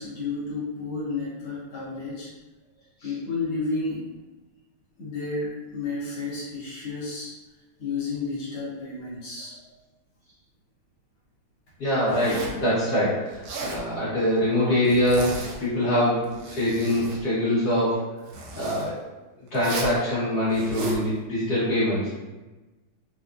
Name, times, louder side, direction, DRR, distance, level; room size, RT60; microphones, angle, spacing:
voice 1, 0.0-2.3 3.0-4.1 5.0-7.3 7.8-9.6, left 3 dB, 70° left, -7 dB, 1.9 m, -31 dB
voice 2, 11.8-18.0 18.5-18.9 19.5-22.0, left 1 dB, 50° left, -10 dB, 1.7 m, -24 dB
Zipper (clothing), 12.1-12.6 13.3-13.8 14.8-15.7 16.2-17.2 18.3-18.8 19.5-20.0 20.5-21.0, right 1 dB, 80° right, 1.5 m, -34 dB
4.4 x 2.4 x 2.5 m, 1.1 s
omnidirectional pair, 2.3 m